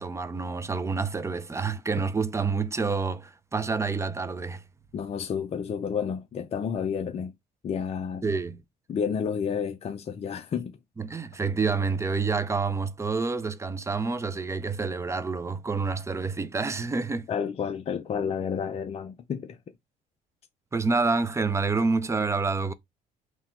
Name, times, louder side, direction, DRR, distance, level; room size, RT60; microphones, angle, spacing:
voice 1, 0.0-4.6 8.2-8.6 11.0-17.3 20.7-22.7, right 4 dB, 15° right, 0.4 m, -28 dB
voice 2, 4.9-7.3 7.6-8.2 8.9-10.7 17.3-19.6, left 7 dB, 35° left, 0.6 m, -30 dB
3.6 x 2.9 x 4.2 m
cardioid pair, 110°, 17 cm